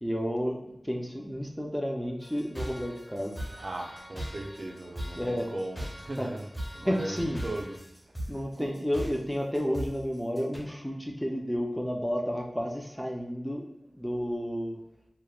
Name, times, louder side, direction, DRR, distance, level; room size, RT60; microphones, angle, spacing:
voice 1, 0.0-3.4 5.2-5.5 6.2-6.3 6.8-7.4 8.3-14.8, equal, ahead, -1 dB, 0.4 m, -31 dB
sound 1, 2.2-10.6, equal, 25° left, 0.8 m, -40 dB
voice 2, 3.6-6.4 6.7-7.8 8.6-8.7, right 1 dB, 75° right, 1 dB, 0.4 m, -38 dB
2.9 x 2.1 x 2.2 m, 0.86 s
wide cardioid pair, 60°, 0 cm